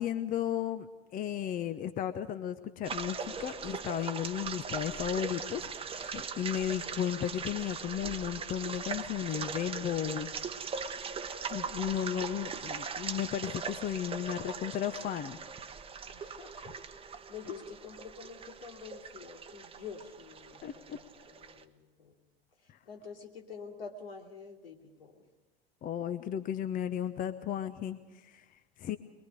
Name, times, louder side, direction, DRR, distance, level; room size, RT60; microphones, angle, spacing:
voice 1, 0.0-10.3 11.5-15.4 20.6-21.0 22.7-22.8 25.8-29.0, left 10 dB, 25° left, 12 dB, 0.9 m, -34 dB
sound 1, 2.8-21.6, right 6 dB, 20° right, 1.1 m, -40 dB
voice 2, 12.0-12.8 16.0-22.2 22.6-25.3, left 5 dB, 70° left, 1 dB, 3.1 m, -48 dB
23.0 x 22.5 x 5.1 m, 1.2 s
figure-of-eight pair, 85°, 31 cm